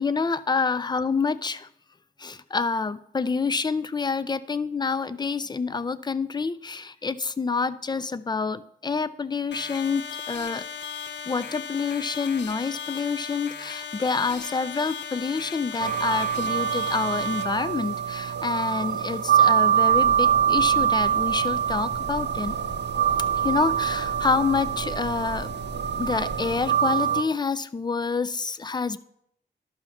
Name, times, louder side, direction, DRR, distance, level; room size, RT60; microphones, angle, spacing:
voice 1, 0.0-1.7 2.2-10.6 11.3-22.6 23.4-25.5 26.0-29.0, left 4 dB, 25° left, 14 dB, 0.4 m, -27 dB
sound 1, 9.5-17.4, left 7 dB, 85° left, 0.5 m, -37 dB
sound 2, 15.8-27.2, right 8 dB, 75° right, 0.6 m, -24 dB
sound 3, 19.9-26.6, right 1 dB, 10° right, 2.0 m, -40 dB
12.0 x 5.5 x 3.5 m, 0.72 s
wide cardioid pair, 105°, 18 cm